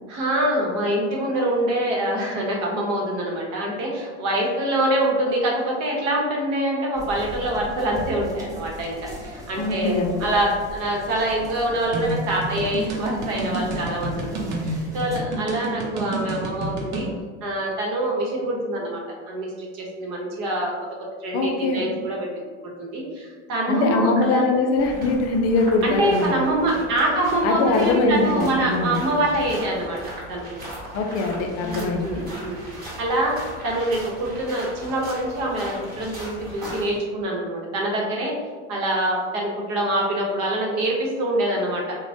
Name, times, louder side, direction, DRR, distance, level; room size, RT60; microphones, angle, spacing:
voice 1, 0.1-17.1 17.4-20.7 21.2-22.3 22.6-24.4 25.8-30.0 30.3-30.5 31.6-33.4 33.6-38.3 38.7-42.0, right 1 dB, 55° right, -2 dB, 1.0 m, -25 dB
sound 1, 6.9-15.2, right 1 dB, 10° right, 0.6 m, -39 dB
voice 2, 9.6-10.1 21.3-21.9 23.7-26.3 27.4-29.1 30.9-32.3, left 3 dB, 50° left, 3 dB, 0.4 m, -22 dB
sound 2, 11.9-17.1, right 2 dB, 75° right, 0.7 m, -29 dB
sound 3, 24.8-37.0, right 1 dB, 25° right, 1.2 m, -38 dB
3.0 x 2.2 x 2.7 m, 1.5 s
hypercardioid pair, 85°, 35 cm